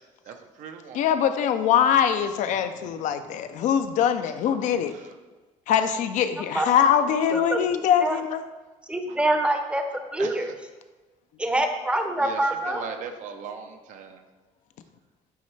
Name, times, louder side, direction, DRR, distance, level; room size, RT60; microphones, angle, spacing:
voice 1, 0.3-1.0 10.2-10.4 12.2-12.4 12.7-14.2, right 6 dB, 70° right, 6 dB, 0.7 m, -38 dB
voice 2, 0.9-4.9 5.7-8.4, left 8 dB, 70° left, 9 dB, 0.4 m, -23 dB
voice 3, 7.3-8.2 8.9-9.8 10.1-10.5 11.4-12.8, right 1 dB, 10° right, 5 dB, 0.6 m, -25 dB
9.2 x 3.2 x 3.3 m, 1.2 s
cardioid pair, 115°, 13 cm